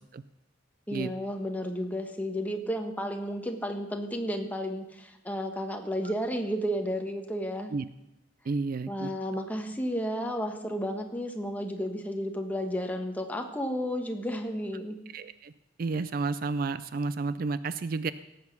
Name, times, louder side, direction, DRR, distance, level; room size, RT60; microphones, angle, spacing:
voice 1, 0.9-7.7 8.9-15.0, equal, 10° left, 4 dB, 1.3 m, -32 dB
voice 2, 8.5-9.1 15.1-15.5 15.8-18.1, right 4 dB, 50° right, 15 dB, 0.4 m, -31 dB
17.5 x 8.0 x 6.0 m, 0.90 s
head